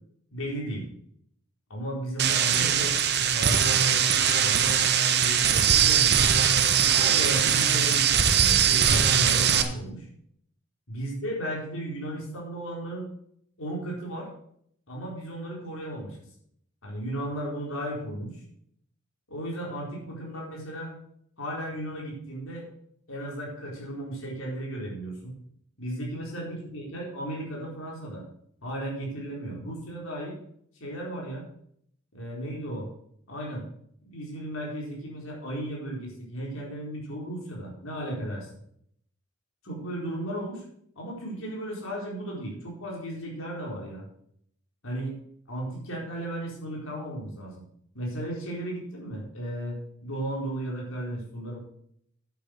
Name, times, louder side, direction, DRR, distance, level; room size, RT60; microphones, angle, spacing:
voice 1, 0.3-0.9 1.7-4.0 4.3-4.8 5.2-6.3 6.9-10.1 10.9-13.1 13.6-14.3 14.9-16.2 16.8-18.4 19.3-21.0 21.4-22.7 23.1-25.3 25.8-28.2 28.6-30.4 30.8-31.5 32.1-32.9 33.3-33.7 34.0-38.5 39.6-40.6 41.0-44.0 44.8-45.2 45.5-47.6 47.9-51.6, right 1 dB, 85° left, -2 dB, 4.2 m, -35 dB
sound 1, 2.2-9.6, right 8 dB, 55° right, 1.1 m, -21 dB
9.1 x 8.1 x 6.3 m, 0.67 s
head